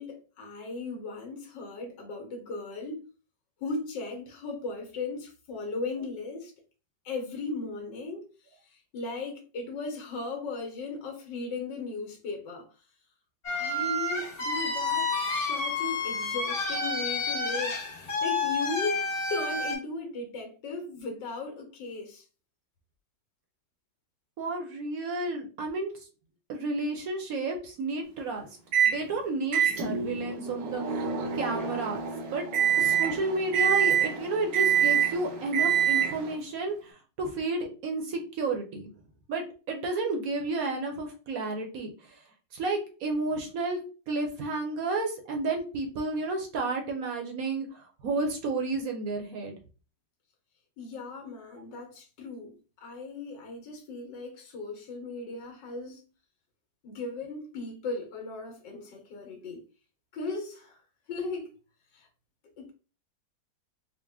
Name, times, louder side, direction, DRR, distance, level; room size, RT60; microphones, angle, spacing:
voice 1, 0.0-3.1 3.6-6.5 7.0-12.7 13.5-19.0 19.3-22.2 50.8-56.0 56.8-59.6 60.1-60.8 61.1-61.6 61.9-62.1 62.6-62.7, left 3 dB, 75° left, 1.5 m, -37 dB
sound 1, 13.4-19.8, left 3 dB, 45° left, 1.5 m, -30 dB
voice 2, 24.4-25.9 26.5-28.5 28.8-31.1 31.3-32.0 32.3-32.4 32.8-38.9 39.3-42.2 42.5-43.8 44.1-49.6, right 3 dB, 60° right, 1.0 m, -31 dB
Microwave oven, 28.7-29.0 29.5-36.4, right 8 dB, 85° right, 1.4 m, -26 dB
4.0 x 2.1 x 3.4 m
omnidirectional pair, 1.9 m